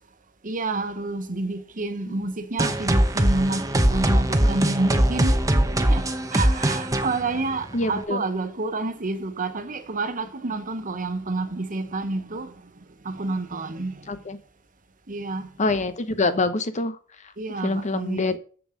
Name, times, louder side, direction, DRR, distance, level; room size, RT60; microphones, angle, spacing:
voice 1, 0.4-5.4 5.9-12.5 13.0-14.1 15.1-15.5 17.4-18.2, right 2 dB, 40° right, 1.1 m, -29 dB
sound 1, 2.6-8.0, right 1 dB, 15° right, 1.0 m, -21 dB
voice 2, 7.7-8.2 14.1-14.4 15.6-18.4, left 3 dB, 35° left, 0.8 m, -26 dB
7.5 x 6.8 x 6.3 m
head